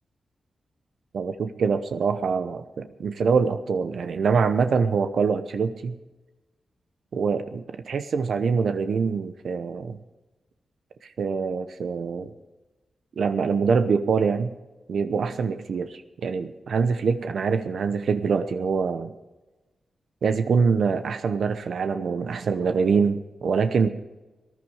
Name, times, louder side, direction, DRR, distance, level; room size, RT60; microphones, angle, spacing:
voice 1, 1.1-6.0 7.1-10.0 11.0-12.3 13.2-14.5 14.9-19.1 20.2-23.9, right 5 dB, 75° right, 9 dB, 0.8 m, -24 dB
19.0 x 11.0 x 4.9 m, 1.1 s
cardioid pair, 80°, 0 cm